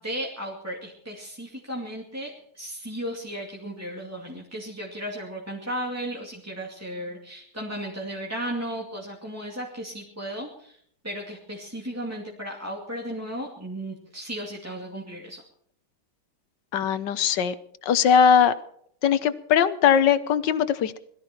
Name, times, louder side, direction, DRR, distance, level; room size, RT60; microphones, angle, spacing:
voice 1, 0.0-15.4, equal, 5° right, -3 dB, 2.3 m, -35 dB
voice 2, 16.7-17.5 17.8-18.5 19.0-21.0, left 7 dB, 65° left, 13 dB, 1.4 m, -20 dB
21.5 x 14.0 x 4.5 m, 0.64 s
omnidirectional pair, 2.3 m